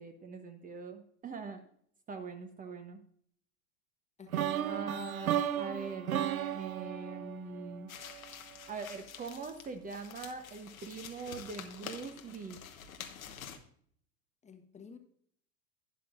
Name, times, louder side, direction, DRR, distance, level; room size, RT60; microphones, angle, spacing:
voice 1, 0.0-1.6 2.1-3.0 4.6-6.2 6.5-7.9 8.7-12.6, right 4 dB, 20° right, 6 dB, 0.9 m, -42 dB
voice 2, 4.2-4.7 14.4-15.0, left 6 dB, 15° left, 7 dB, 1.2 m, -53 dB
sound 1, 4.3-8.3, right 10 dB, 80° right, 0.7 m, -34 dB
sound 2, 7.9-13.6, left 8 dB, 75° left, 1.3 m, -48 dB
12.0 x 10.5 x 2.5 m, 0.62 s
figure-of-eight pair, 90°, 41 cm